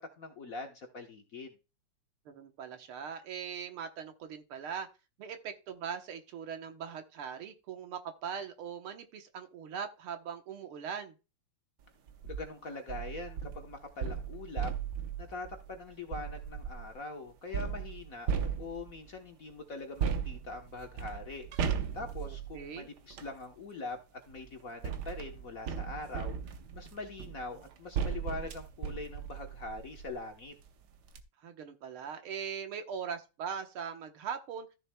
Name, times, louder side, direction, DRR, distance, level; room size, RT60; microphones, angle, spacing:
voice 1, 0.2-1.6 12.2-14.7 15.2-18.3 18.6-21.5 21.9-30.5, left 3 dB, 45° left, 1.3 m, -43 dB
voice 2, 2.3-4.9 5.2-11.1 22.2-22.9 31.4-34.7, right 7 dB, 75° right, 2.0 m, -40 dB
sound 1, 12.1-12.4 12.9-16.9 17.5-19.1 20.0-23.4 24.3-30.2 30.7-30.8 31.0-31.2, right 7 dB, 60° right, 1.2 m, -37 dB
14.0 x 6.7 x 2.2 m
omnidirectional pair, 2.4 m